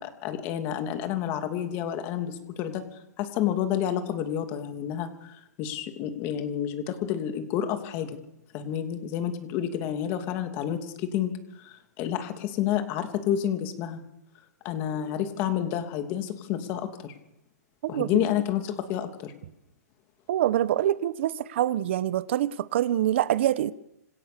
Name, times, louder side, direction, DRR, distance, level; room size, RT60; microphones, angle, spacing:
voice 1, 0.0-2.8 3.2-8.2 8.5-14.0 14.6-17.1 17.9-19.3, left 10 dB, 25° left, 2.9 m, -30 dB
voice 2, 20.3-23.7, right 12 dB, 40° right, 1.2 m, -25 dB
27.0 x 26.0 x 6.9 m
hypercardioid pair, 170°, 9 cm